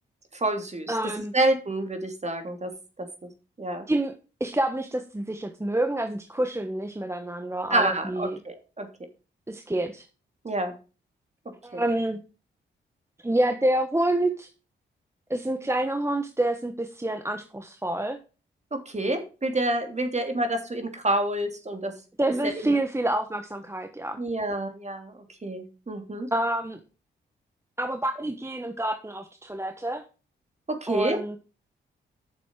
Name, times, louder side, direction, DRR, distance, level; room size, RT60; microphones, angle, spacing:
voice 1, 0.3-1.0 1.3-2.7 3.0-3.3 3.6-3.9 7.7-8.9 10.4-10.7 11.7-11.8 18.7-21.9 22.4-22.8 24.2-25.1 25.4-26.3 30.7-31.2, right 1 dB, 35° right, 6 dB, 2.9 m, -28 dB
voice 2, 0.9-1.3 3.9-8.4 9.5-10.1 11.6-12.2 13.2-14.5 15.3-18.2 22.2-24.2 26.3-26.8 27.8-30.0 30.9-31.4, right 1 dB, 15° right, 8 dB, 1.2 m, -28 dB
9.6 x 6.9 x 4.8 m, 0.34 s
supercardioid pair, 50°, 21 cm